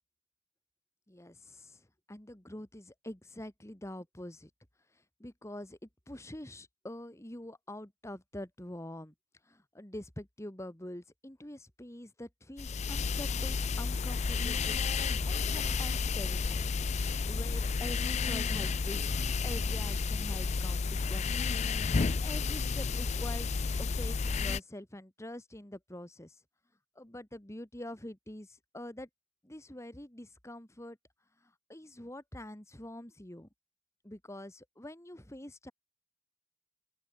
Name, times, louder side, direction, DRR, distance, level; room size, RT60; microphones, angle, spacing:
voice 1, 1.1-4.5 4.9-9.1 9.4-16.7 17.3-19.1 19.4-26.4 26.9-29.1 29.4-31.0 31.4-33.5 34.0-35.7, left 1 dB, 15° left, 1.8 m, -45 dB
sound 1, 12.6-24.6, left 4 dB, 35° left, 0.5 m, -31 dB
open air
head